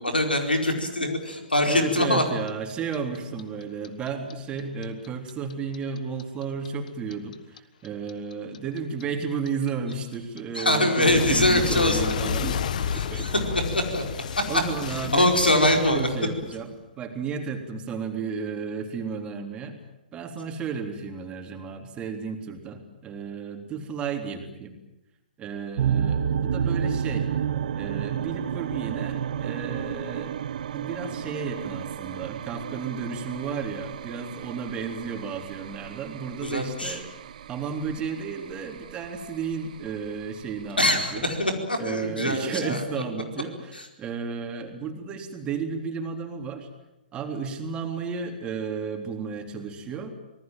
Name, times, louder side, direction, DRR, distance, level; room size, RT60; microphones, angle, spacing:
voice 1, 0.0-2.2 10.5-12.1 12.9-14.1 14.4-14.6 15.1-16.1 36.4-37.0 40.8-42.8 43.7-43.9, left 1 dB, 90° left, 4 dB, 4.7 m, -23 dB
Clock, 1.3-4.3 4.6-7.6 7.8-16.7, left 7 dB, 55° left, 1.5 m, -31 dB
voice 2, 1.7-13.4 14.5-19.8 20.1-24.8 25.4-27.3 27.7-30.4 30.7-37.1 37.5-41.3 41.8-46.7 47.1-50.1, right 5 dB, 20° right, 4 dB, 3.6 m, -33 dB
sound 1, 25.8-41.5, right 8 dB, 55° right, 1.1 m, -31 dB
26.0 x 19.5 x 9.1 m, 0.97 s
figure-of-eight pair, 120°, 5 cm